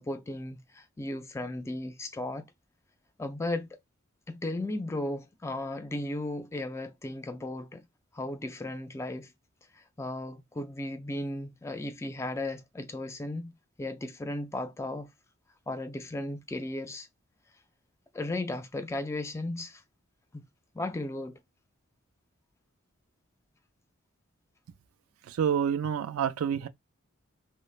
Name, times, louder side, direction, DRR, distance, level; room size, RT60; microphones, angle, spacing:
voice 1, 0.0-2.4 3.2-3.7 4.3-7.9 8.1-9.3 9.8-13.5 13.8-15.1 15.7-17.1 18.1-19.8 20.3-20.4 20.7-21.4, left 1 dB, 15° left, 0.3 m, -35 dB
voice 2, 25.3-26.7, right 8 dB, 75° right, 0.3 m, -28 dB
3.1 x 2.0 x 2.3 m
head